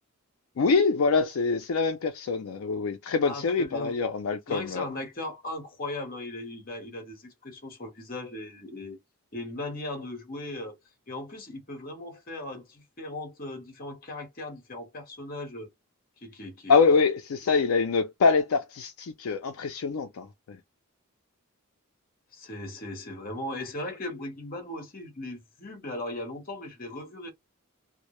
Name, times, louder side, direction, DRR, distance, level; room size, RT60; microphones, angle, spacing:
voice 1, 0.6-4.9 16.7-20.6, left 4 dB, 70° left, 0.4 m, -25 dB
voice 2, 3.2-4.0 4.5-9.0 9.3-10.8 11.1-15.7 16.2-16.8 22.3-27.3, left 1 dB, 40° left, 0.9 m, -38 dB
2.1 x 2.0 x 2.9 m
head